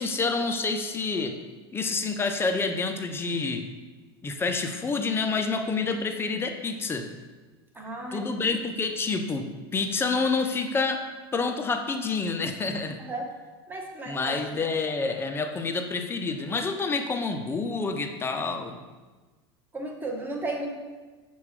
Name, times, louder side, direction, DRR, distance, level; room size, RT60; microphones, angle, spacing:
voice 1, 0.0-1.4 1.7-3.6 4.2-7.1 8.1-9.5 9.7-11.0 11.3-13.0 14.1-18.8, left 4 dB, 15° left, 6 dB, 0.4 m, -28 dB
voice 2, 7.7-8.6 13.0-13.3 13.7-14.4 19.7-20.7, right 2 dB, 15° right, 1 dB, 0.8 m, -34 dB
5.7 x 2.2 x 3.5 m, 1.3 s
hypercardioid pair, 95°, 13 cm